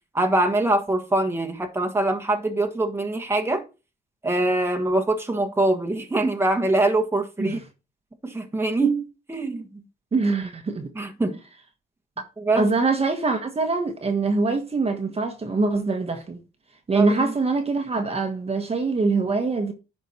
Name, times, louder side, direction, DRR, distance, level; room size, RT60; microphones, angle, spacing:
voice 1, 0.1-3.6 4.2-7.6 8.2-9.0 9.3-9.8 10.9-11.4 12.4-12.7 16.9-17.3, right 2 dB, 10° right, 1.4 m, -23 dB
voice 2, 10.1-10.9 12.6-16.4 16.9-19.7, right 3 dB, 30° right, 1.3 m, -23 dB
10.5 x 4.6 x 4.3 m
cardioid pair, 90°, 20 cm